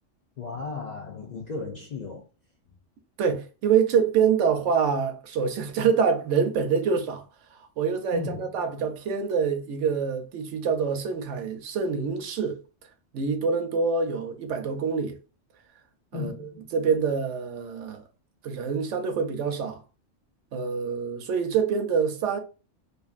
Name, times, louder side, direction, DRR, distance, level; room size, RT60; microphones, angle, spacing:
voice 1, 0.4-2.3 8.1-8.6 16.1-16.7, left 4 dB, 55° left, 0.5 m, -35 dB
voice 2, 3.2-7.2 7.5-12.6 13.1-15.2 16.1-16.3 16.7-18.0 18.4-19.8 20.5-22.4, right 6 dB, 85° right, 1.0 m, -26 dB
2.5 x 2.5 x 2.4 m
omnidirectional pair, 1.2 m